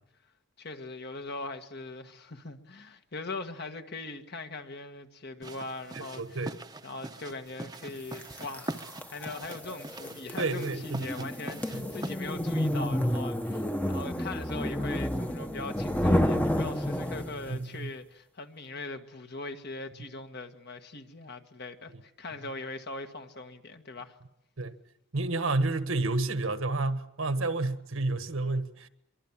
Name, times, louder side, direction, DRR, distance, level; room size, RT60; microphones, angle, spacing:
voice 1, 0.6-6.5 6.8-24.2, left 3 dB, 50° left, 1.7 m, -41 dB
sound 1, 5.4-12.2, right 2 dB, 20° right, 0.9 m, -42 dB
voice 2, 5.9-6.5 10.4-11.3 11.7-11.9 17.5-17.9 24.6-24.8 25.1-28.9, right 2 dB, 75° right, 1.5 m, -30 dB
sound 2, 8.2-17.6, left 1 dB, 5° left, 1.0 m, -30 dB
24.5 x 23.5 x 7.4 m
head